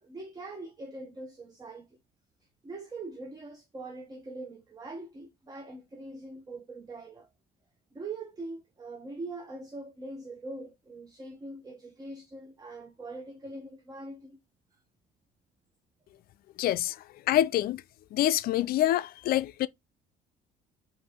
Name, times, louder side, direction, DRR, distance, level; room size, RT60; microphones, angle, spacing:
voice 1, 0.0-2.0 2.6-7.3 7.9-14.4, right 2 dB, 20° right, 0.7 m, -42 dB
voice 2, 16.6-17.0 17.3-17.8 18.1-19.7, left 13 dB, 60° left, 0.4 m, -26 dB
4.8 x 2.6 x 3.4 m
cardioid pair, 110°, 17 cm